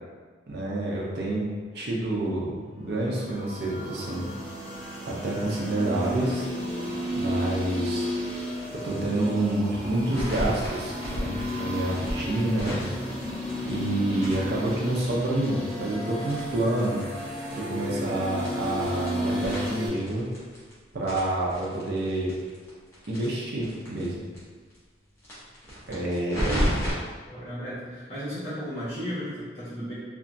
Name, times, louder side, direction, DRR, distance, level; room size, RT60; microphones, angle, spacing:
voice 1, 0.5-1.5 1.7-4.3 5.1-6.5 7.2-8.1 8.7-12.8 13.6-17.1 17.5-20.2 20.9-22.3 23.1-24.2 25.9-26.7, right 1 dB, 60° right, -4 dB, 0.5 m, -28 dB
sound 1, 3.0-19.9, left 1 dB, 20° right, 0.7 m, -33 dB
sound 2, 10.0-13.9 14.2-17.2 17.5-17.6 17.8-17.9 18.3-20.7 21.0-24.1 24.3-24.4 24.7-24.8 25.2-26.9, equal, 15° left, 0.7 m, -33 dB
voice 2, 26.3-26.7 27.3-29.9, equal, 35° left, -11 dB, 1.3 m, -34 dB
3.0 x 2.3 x 2.6 m, 1.4 s
head